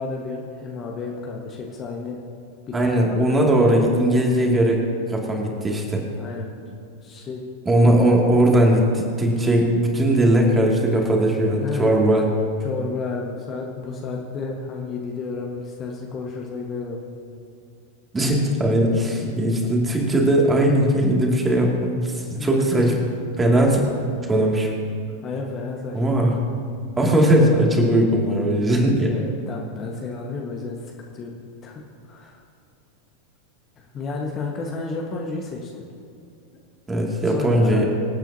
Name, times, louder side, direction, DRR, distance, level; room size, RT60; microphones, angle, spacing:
voice 1, 0.0-2.2 2.7-3.3 6.1-6.5 7.0-7.4 7.8-7.9 11.6-11.9 12.6-17.1 22.3-22.9 24.2-24.3 25.2-26.3 29.1-31.3 31.6-31.8 32.1-32.4 33.8-35.8 37.2-37.8, left 4 dB, 25° left, -1 dB, 1.3 m, -32 dB
voice 2, 2.7-4.8 5.1-6.0 7.7-12.3 18.1-22.9 23.4-23.8 24.3-24.7 25.9-26.5 27.0-29.1 36.9-37.8, right 1 dB, 15° right, -1 dB, 2.3 m, -19 dB
25.5 x 8.9 x 2.8 m, 2.3 s
figure-of-eight pair, 90°, 0 cm